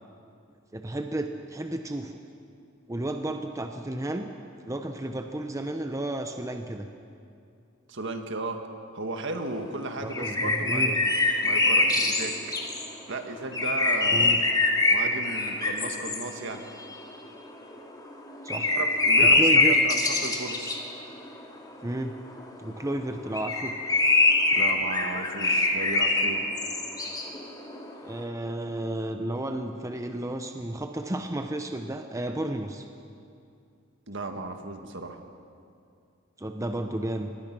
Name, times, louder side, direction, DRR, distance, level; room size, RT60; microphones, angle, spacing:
voice 1, 0.7-2.2 2.9-4.3 4.6-6.9 10.0-11.0 14.1-14.4 18.4-18.7 19.2-19.8 21.8-22.1 22.6-23.8 28.0-32.9 36.4-37.3, right 1 dB, 15° right, 6 dB, 0.8 m, -32 dB
voice 2, 7.9-8.6 8.9-11.0 11.4-12.3 13.1-14.4 14.9-16.6 18.7-20.8 24.5-26.4 34.1-35.2, right 2 dB, 60° right, 5 dB, 1.8 m, -35 dB
sound 1, 9.6-9.7 10.1-12.9 13.5-17.8 18.1-22.9 23.2-28.1, left 2 dB, 20° left, 2.2 m, -24 dB
24.0 x 20.0 x 6.1 m, 2.5 s
head